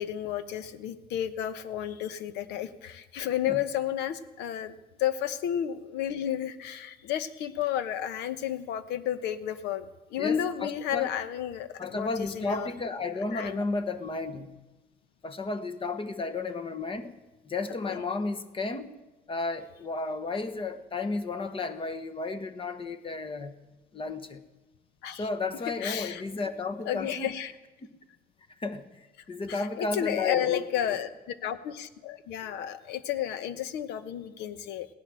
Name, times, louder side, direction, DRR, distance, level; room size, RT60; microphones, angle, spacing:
voice 1, 0.0-12.7 13.3-13.6 17.9-18.0 25.0-25.3 25.8-26.2 26.9-27.5 29.5-34.9, left 10 dB, 90° left, 1.1 m, -32 dB
voice 2, 10.2-11.1 11.8-14.7 15.2-17.1 17.4-18.9 19.3-23.5 23.9-24.4 25.1-27.3 28.6-31.0, left 3 dB, 30° left, 1.3 m, -33 dB
17.5 x 11.0 x 7.7 m
cardioid pair, 110°, 17 cm